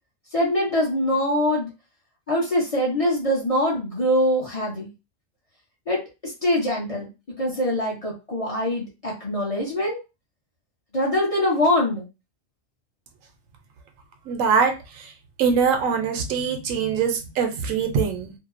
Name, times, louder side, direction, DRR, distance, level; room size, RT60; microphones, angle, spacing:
voice 1, 0.3-1.7 2.3-4.9 5.9-7.1 7.4-10.0 10.9-12.0, left 1 dB, 35° left, -3 dB, 0.7 m, -23 dB
voice 2, 14.3-15.1 15.4-18.3, right 6 dB, 80° right, 5 dB, 1.0 m, -23 dB
2.7 x 2.1 x 2.4 m, 0.27 s
omnidirectional pair, 1.3 m